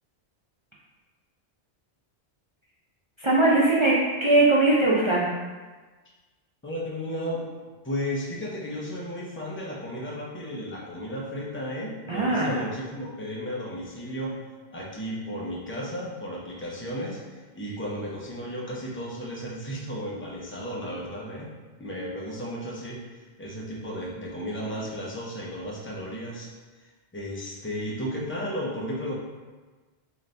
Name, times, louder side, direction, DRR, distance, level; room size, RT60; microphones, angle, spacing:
voice 1, 3.2-5.3 12.1-12.6, right 2 dB, 55° right, -6 dB, 0.3 m, -20 dB
voice 2, 6.6-7.4 7.8-14.4 14.7-21.5 21.8-26.5 26.8-26.9 27.1-29.2, equal, 15° left, -4 dB, 0.5 m, -34 dB
4.0 x 2.7 x 3.2 m, 1.3 s
omnidirectional pair, 1.1 m